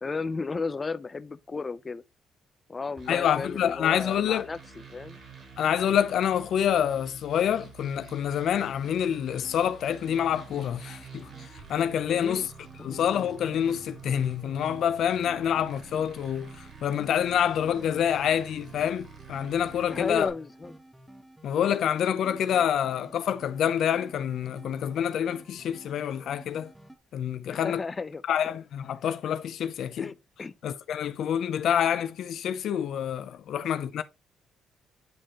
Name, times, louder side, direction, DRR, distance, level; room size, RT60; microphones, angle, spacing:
voice 1, 0.0-2.0 2.7-5.2 12.1-12.5 12.8-13.0 19.9-20.7 27.5-28.2 30.0-30.1 30.4-30.5, left 4 dB, 30° left, 0.6 m, -34 dB
sound 1, 3.0-20.3, right 6 dB, 50° right, 3.8 m, -48 dB
voice 2, 3.1-4.5 5.6-12.5 12.8-20.3 21.4-26.7 27.1-27.8 28.3-30.1 30.6-34.0, left 9 dB, 70° left, 0.6 m, -27 dB
sound 2, 9.3-27.0, right 1 dB, 5° right, 1.2 m, -51 dB
9.5 x 4.2 x 3.0 m
cardioid pair, 90°, 0 cm